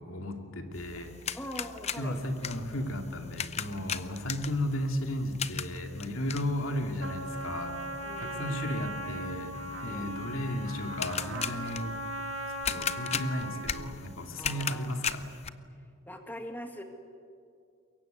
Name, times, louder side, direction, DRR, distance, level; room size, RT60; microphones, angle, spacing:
voice 1, 0.0-1.2 2.0-7.8 8.2-12.0 12.7-15.3, left 1 dB, 75° left, 4 dB, 2.6 m, -34 dB
sound 1, 0.7-15.5, left 7 dB, 30° left, 0.7 m, -39 dB
voice 2, 1.3-2.2 8.0-8.7 9.8-10.2 14.4-15.1 16.1-16.8, equal, 10° left, 4 dB, 1.8 m, -42 dB
Trumpet, 7.0-13.9, equal, 80° right, 2.0 m, -38 dB
23.5 x 22.5 x 9.3 m, 2.3 s
head